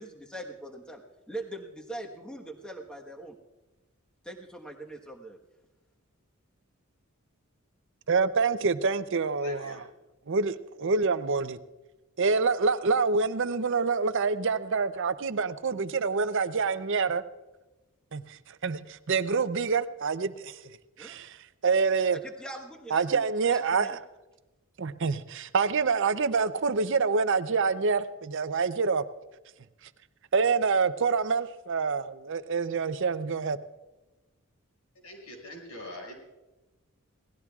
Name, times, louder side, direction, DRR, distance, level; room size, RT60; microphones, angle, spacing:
voice 1, 0.0-3.4 4.2-5.4 21.0-21.2 22.1-24.0, right 1 dB, 5° left, 0 dB, 1.3 m, -42 dB
voice 2, 8.1-9.8 10.3-11.6 12.2-17.2 18.1-20.6 21.0-21.4 21.6-22.2 22.9-23.9 24.8-29.0 30.3-33.6, right 4 dB, 60° right, 12 dB, 0.6 m, -26 dB
voice 3, 9.4-9.8 35.0-36.1, left 1 dB, 90° left, 1 dB, 6.0 m, -43 dB
28.0 x 18.0 x 2.4 m, 1.1 s
head